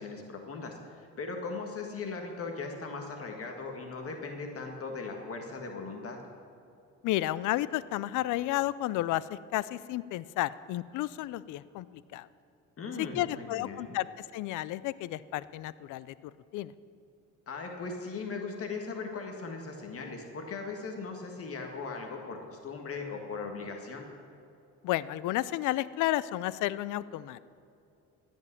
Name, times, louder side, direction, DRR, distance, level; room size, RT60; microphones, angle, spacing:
voice 1, 0.0-6.2 12.8-14.0 17.5-24.1, left 4 dB, 50° left, 2 dB, 1.8 m, -39 dB
voice 2, 7.0-12.3 13.0-16.1 16.5-16.7 24.8-27.4, left 15 dB, 75° left, 18 dB, 0.5 m, -32 dB
15.5 x 5.4 x 9.8 m, 2.6 s
cardioid pair, 85°, 30 cm